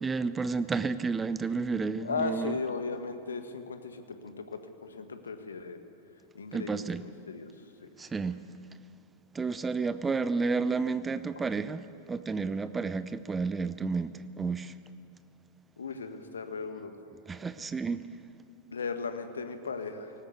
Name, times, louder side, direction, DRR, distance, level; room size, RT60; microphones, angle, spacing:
voice 1, 0.0-2.6 6.5-7.1 8.0-8.4 9.3-14.8 17.3-18.1, right 4 dB, 15° right, 14 dB, 0.6 m, -31 dB
voice 2, 2.0-5.8 6.3-7.5 15.8-16.9 18.7-20.1, left 4 dB, 70° left, 8 dB, 1.6 m, -36 dB
19.0 x 18.5 x 8.2 m, 2.6 s
figure-of-eight pair, 90°, 0 cm